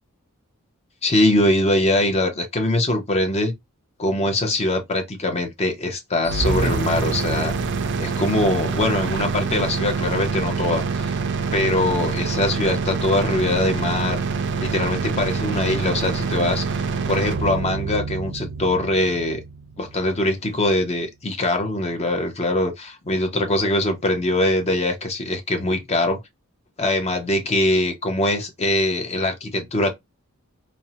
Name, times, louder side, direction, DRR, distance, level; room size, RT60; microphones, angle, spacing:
voice 1, 1.0-3.5 4.0-7.5 8.0-11.2 11.5-14.2 14.6-19.4 19.8-26.2 26.8-29.9, left 1 dB, 30° left, 0.6 m, -22 dB
sound 1, 6.2-20.2, right 4 dB, 55° right, 0.4 m, -26 dB
2.6 x 2.0 x 2.6 m
head